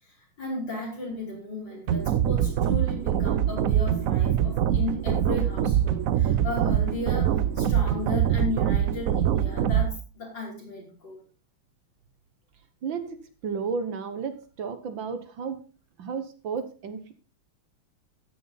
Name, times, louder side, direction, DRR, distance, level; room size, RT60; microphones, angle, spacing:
voice 1, 0.0-11.2, left 2 dB, 55° left, -3 dB, 5.6 m, -35 dB
sound 1, 1.9-9.9, right 10 dB, 85° right, 0.7 m, -24 dB
voice 2, 12.8-15.6 16.0-17.1, right 5 dB, 65° right, 9 dB, 1.9 m, -33 dB
13.0 x 10.0 x 4.0 m, 0.34 s
omnidirectional pair, 2.3 m